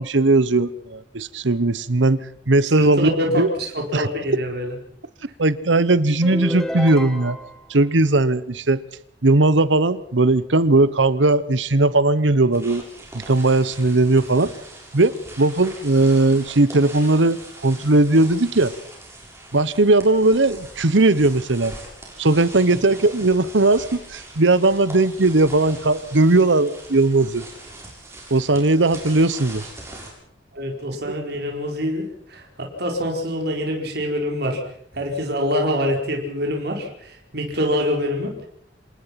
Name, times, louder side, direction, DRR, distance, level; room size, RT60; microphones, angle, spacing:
voice 1, 0.0-3.1 3.4-3.5 3.9-4.1 5.4-7.4 7.7-8.8 9.2-12.8 13.1-14.5 14.9-18.7 19.5-21.7 22.2-27.5 28.3-29.6, right 2 dB, 85° right, 17 dB, 1.1 m, -18 dB
voice 2, 2.7-4.7 30.5-32.0 32.3-32.4 32.8-34.6 34.9-38.5, equal, 60° right, 1 dB, 4.6 m, -25 dB
sound 1, 6.2-7.7, equal, ahead, 1.5 m, -30 dB
sound 2, 12.5-30.1, right 2 dB, 15° right, 7.1 m, -41 dB
27.0 x 19.5 x 5.9 m, 0.68 s
head